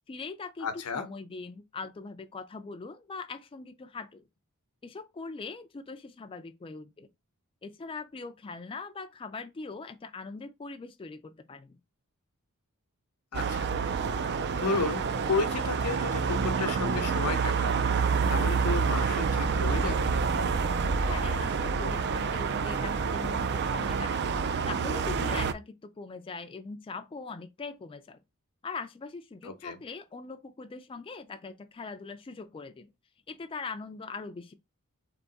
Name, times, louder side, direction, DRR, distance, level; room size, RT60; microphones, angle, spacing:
voice 1, 0.1-4.3 4.8-7.1 7.6-11.8 21.1-24.3 24.7-28.2 28.6-32.9 33.3-34.5, left 4 dB, 25° left, 0.3 m, -41 dB
voice 2, 0.6-1.1 13.3-13.7 14.6-17.8 18.3-20.1 29.4-29.8, left 4 dB, 90° left, 0.8 m, -32 dB
sound 1, 13.3-25.5, right 5 dB, 50° right, 0.4 m, -28 dB
3.5 x 3.4 x 3.9 m
head